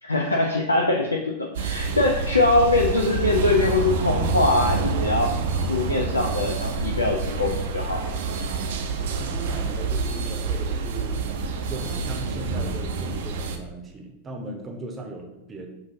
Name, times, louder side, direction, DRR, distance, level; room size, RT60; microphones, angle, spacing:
voice 1, 0.0-8.0, left 2 dB, 80° left, 0 dB, 0.4 m, -23 dB
sound 1, 1.5-13.6, right 4 dB, 55° right, 0.4 m, -27 dB
voice 2, 9.2-11.2 11.6-15.7, right 2 dB, 20° right, 1 dB, 0.7 m, -37 dB
5.9 x 2.5 x 2.6 m, 0.95 s
figure-of-eight pair, 90°, 0 cm